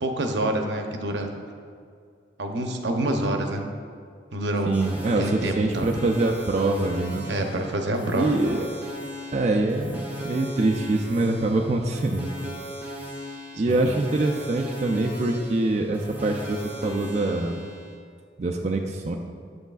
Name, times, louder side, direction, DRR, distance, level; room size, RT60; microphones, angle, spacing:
voice 1, 0.0-1.3 2.4-3.6 4.3-4.7 5.2-5.9 7.3-8.3 13.5-13.9, right 1 dB, 75° right, 4 dB, 0.7 m, -27 dB
sound 1, 4.7-18.0, left 1 dB, 10° right, 0.9 m, -37 dB
voice 2, 4.7-7.3 8.1-8.6 9.3-12.3 13.6-17.6 18.4-19.2, right 2 dB, 40° right, 1 dB, 0.4 m, -24 dB
7.9 x 7.9 x 2.4 m, 2.2 s
head